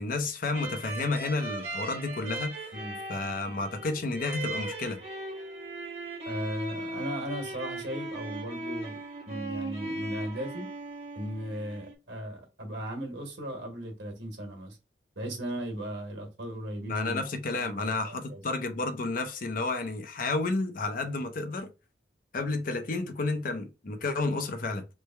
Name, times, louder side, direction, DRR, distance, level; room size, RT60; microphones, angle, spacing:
voice 1, 0.0-2.5 3.1-5.0 16.9-21.7 22.3-24.9, left 3 dB, 55° left, 0.6 m, -31 dB
sound 1, 0.5-11.9, right 2 dB, 35° right, 1.2 m, -38 dB
voice 2, 6.2-9.0 9.3-10.7 11.1-14.8 15.2-17.2 17.6-18.4, equal, 85° right, 1.3 m, -37 dB
3.2 x 2.2 x 4.3 m
head